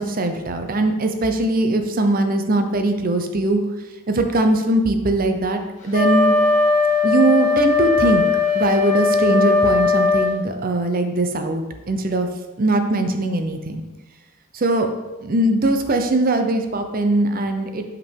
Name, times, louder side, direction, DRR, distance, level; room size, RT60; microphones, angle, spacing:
voice 1, 0.0-3.6 4.1-6.3 7.0-8.2 8.5-12.3 12.6-13.8 14.5-14.9 15.2-17.8, right 2 dB, 45° right, 6 dB, 0.7 m, -20 dB
Wind instrument woodwind instrument, 5.9-10.4, left 4 dB, 35° left, 1.3 m, -18 dB
5.9 x 5.2 x 4.5 m, 1.1 s
head